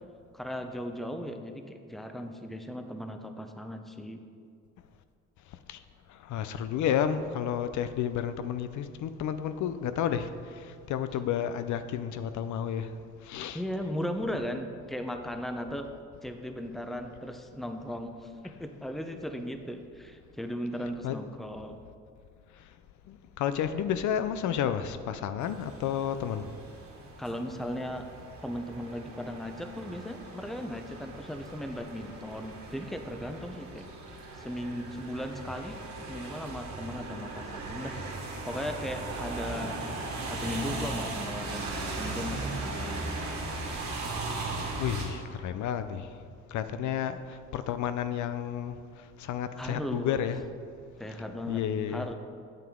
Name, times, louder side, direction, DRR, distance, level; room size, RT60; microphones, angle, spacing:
voice 1, 0.3-4.2 13.5-15.9 16.2-18.3 18.6-21.8 27.2-28.1 28.4-33.8 34.3-35.8 36.1-37.9 38.4-39.8 40.2-43.2 49.6-50.2 51.0-51.6 51.9-52.1, equal, ahead, 0.6 m, -37 dB
voice 2, 6.1-12.9 13.2-13.6 21.0-21.2 23.1-26.5 44.8-46.1 46.5-50.4 51.5-52.1, left 9 dB, 75° left, 0.5 m, -31 dB
sound 1, 25.4-45.1, right 2 dB, 65° right, 2.1 m, -38 dB
9.0 x 7.8 x 3.6 m
cardioid pair, 90°, 30 cm